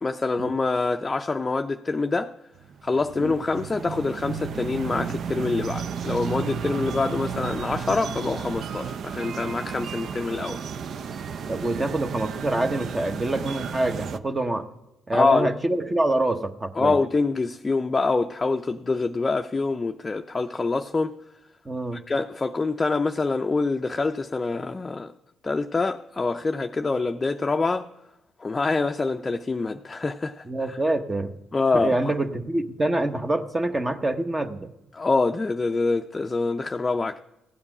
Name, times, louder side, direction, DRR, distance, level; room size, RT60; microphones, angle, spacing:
voice 1, 0.0-2.3 2.8-10.6 15.1-15.5 16.8-21.2 21.9-25.1 25.4-27.9 28.4-30.8 31.5-32.1 34.9-37.2, left 3 dB, 30° left, 0.5 m, -25 dB
sound 1, 2.6-14.2, right 7 dB, 60° right, 0.5 m, -33 dB
voice 2, 11.5-14.7 15.1-17.0 21.6-22.0 30.5-31.4 31.7-34.7, right 2 dB, 25° right, 0.9 m, -26 dB
15.5 x 8.7 x 4.9 m
hypercardioid pair, 55°, 0 cm